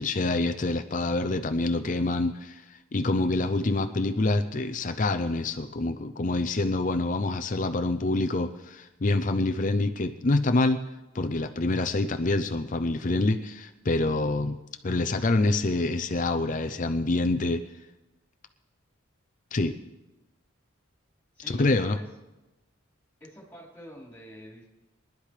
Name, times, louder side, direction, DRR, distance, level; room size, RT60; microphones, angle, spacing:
voice 1, 0.0-10.8 11.1-14.6 14.8-17.6 19.5-19.8 21.5-22.0, left 2 dB, 35° left, 8 dB, 0.5 m, -26 dB
voice 2, 21.3-22.1 23.2-24.7, equal, 10° left, -5 dB, 4.3 m, -46 dB
23.0 x 11.5 x 3.3 m, 1.0 s
head